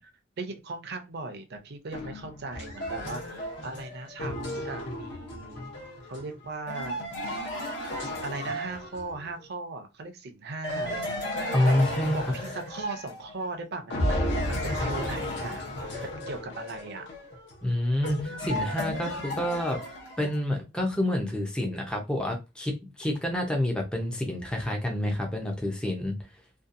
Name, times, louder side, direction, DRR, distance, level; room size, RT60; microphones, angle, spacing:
voice 1, 0.4-5.7 6.1-7.1 8.2-11.4 11.6-11.7 12.1-17.1, right 3 dB, 55° right, 0.5 m, -38 dB
sound 1, 1.9-9.3 10.6-13.5 13.9-20.4, left 1 dB, 60° left, 0.7 m, -33 dB
voice 2, 11.5-12.3 16.0-16.1 17.6-19.8 20.2-26.2, left 1 dB, 5° left, 0.4 m, -28 dB
2.7 x 2.2 x 2.5 m
head